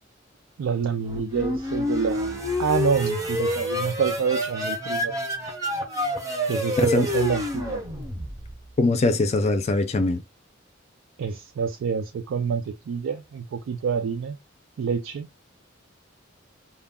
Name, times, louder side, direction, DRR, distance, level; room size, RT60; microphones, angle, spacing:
voice 1, 0.6-5.1 6.5-7.8 11.2-14.4 14.8-15.3, right 6 dB, 90° right, 0.3 m, -27 dB
sound 1, 1.0-8.7, left 1 dB, 15° right, 0.6 m, -28 dB
voice 2, 8.8-10.2, left 2 dB, 35° left, 0.4 m, -22 dB
2.3 x 2.0 x 3.4 m
head